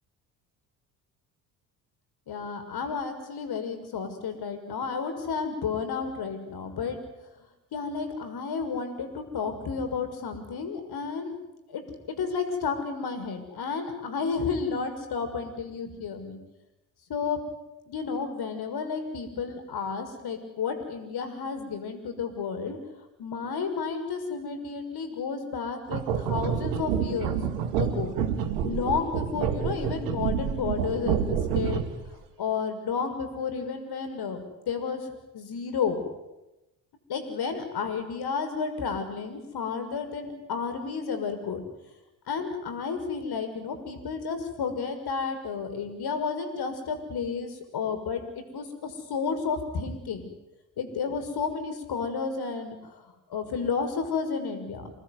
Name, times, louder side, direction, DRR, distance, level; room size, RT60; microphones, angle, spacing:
voice 1, 2.3-7.0 7.7-11.3 11.7-11.8 12.2-16.4 17.1-17.4 17.9-22.8 23.2-27.4 27.8-28.1 28.6-31.8 32.4-35.1 35.3-36.0 37.1-41.6 42.3-50.3 50.8-52.8 53.3-54.9, left 5 dB, 50° left, 7 dB, 6.2 m, -31 dB
sound 1, 25.9-32.1, right 8 dB, 70° right, 2.7 m, -28 dB
28.5 x 19.5 x 9.7 m, 0.99 s
figure-of-eight pair, 50°, 49 cm